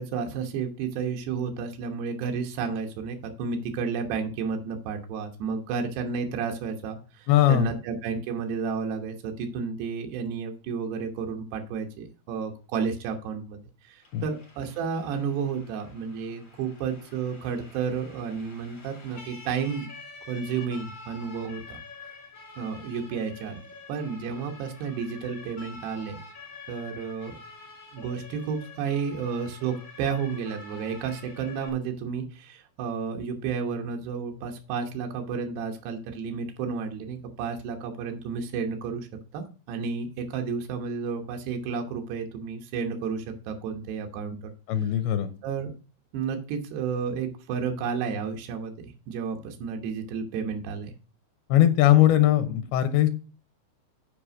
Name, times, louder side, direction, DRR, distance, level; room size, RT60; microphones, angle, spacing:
voice 1, 0.0-13.6 13.8-19.9 20.3-22.1 22.6-23.6 23.9-26.2 26.7-27.4 27.9-44.5 44.8-44.9 45.4-45.7 46.1-50.9, right 6 dB, 90° right, 3 dB, 3.2 m, -32 dB
voice 2, 7.3-7.7 14.1-14.2 44.7-45.3 51.5-53.1, left 12 dB, 80° left, 9 dB, 2.7 m, -20 dB
Siren, 14.0-31.7, left 3 dB, 30° left, 2.7 m, -47 dB
8.6 x 5.0 x 6.1 m, 0.36 s
omnidirectional pair, 4.6 m